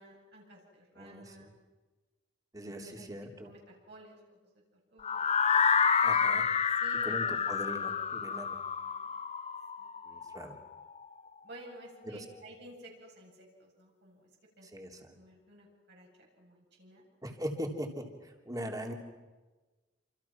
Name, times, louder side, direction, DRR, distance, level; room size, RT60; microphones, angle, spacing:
voice 1, 0.0-1.5 2.6-3.2 3.4-4.4 4.9-5.2 6.8-7.3 8.3-9.2 9.8-10.3 11.4-14.3 14.6-14.7 15.1-17.0, right 1 dB, 65° right, -2 dB, 8.0 m, -53 dB
voice 2, 1.0-1.5 2.5-3.5 6.0-6.4 7.0-8.6 10.1-10.6 12.1-12.2 14.7-15.2 17.2-18.9, equal, 20° right, 2 dB, 3.4 m, -40 dB
sound 1, 5.0-11.0, left 6 dB, 35° left, 0.8 m, -29 dB
28.0 x 28.0 x 6.1 m, 1.2 s
head